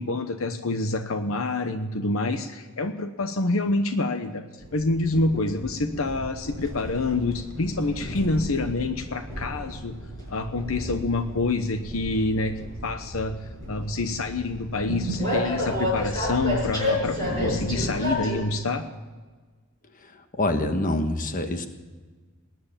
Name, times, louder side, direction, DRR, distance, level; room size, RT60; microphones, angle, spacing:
voice 1, 0.0-4.4 4.7-9.9 10.3-12.5 12.8-13.3 13.7-18.8, left 2 dB, 70° left, 8 dB, 1.0 m, -27 dB
Train, 4.6-18.4, equal, 20° left, 6.1 m, -31 dB
voice 2, 20.0-21.7, left 1 dB, 40° left, 7 dB, 1.4 m, -26 dB
20.0 x 9.6 x 7.3 m, 1.4 s
head